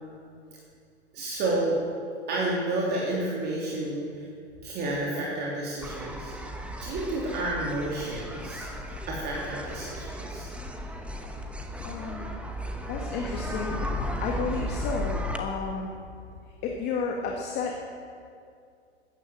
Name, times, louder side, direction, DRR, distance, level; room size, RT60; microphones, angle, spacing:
voice 1, 1.1-1.8 2.3-4.3 4.6-6.4 6.8-8.7 9.1-10.5, right 2 dB, 30° right, -4 dB, 3.0 m, -30 dB
sound 1, 5.8-15.4, equal, 5° right, 1.0 m, -35 dB
voice 2, 11.8-12.3 12.9-15.9 16.6-17.8, left 5 dB, 30° left, 0 dB, 1.6 m, -32 dB
13.5 x 9.8 x 7.8 m, 2.3 s
figure-of-eight pair, 110°, 34 cm